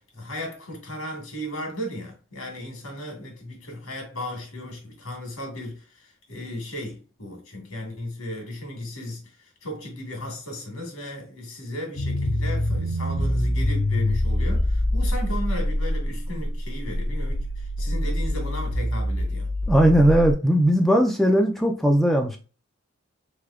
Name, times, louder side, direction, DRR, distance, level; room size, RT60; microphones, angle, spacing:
voice 1, 0.0-9.2 9.6-19.5, left 1 dB, 85° left, 1.7 m, -35 dB
sound 1, 12.0-20.3, left 1 dB, 55° left, 0.7 m, -25 dB
voice 2, 19.7-22.4, equal, ahead, 0.3 m, -18 dB
3.7 x 3.3 x 2.4 m
head